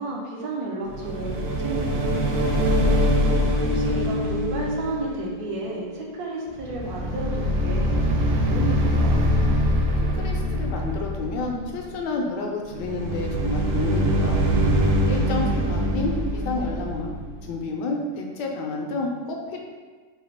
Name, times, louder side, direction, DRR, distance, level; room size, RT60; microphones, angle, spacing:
voice 1, 0.0-2.3 3.6-9.2 15.2-15.9, right 3 dB, 65° right, -2 dB, 1.2 m, -33 dB
sound 1, 0.9-6.2 6.5-11.8 12.7-17.6, equal, 85° right, 0.6 m, -23 dB
voice 2, 10.2-14.4 15.1-17.1 17.4-19.6, left 3 dB, 75° left, 1 dB, 1.2 m, -30 dB
4.0 x 2.3 x 4.4 m, 1.4 s
omnidirectional pair, 2.0 m